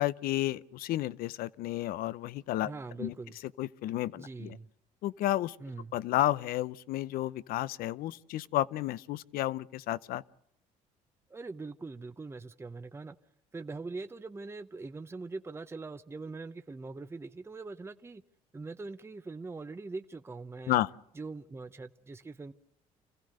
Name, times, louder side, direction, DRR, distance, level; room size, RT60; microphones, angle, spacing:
voice 1, 0.0-2.7 3.0-3.1 3.6-4.6 5.0-5.6 5.9-10.2 20.7-20.9, left 15 dB, 75° left, 0.7 m, -31 dB
voice 2, 2.6-3.4 4.1-4.7 5.6-5.9 11.3-13.2 13.5-18.2 18.5-20.8 21.2-22.5, right 3 dB, 15° right, 0.8 m, -42 dB
27.0 x 15.5 x 6.5 m
cardioid pair, 95°, 15 cm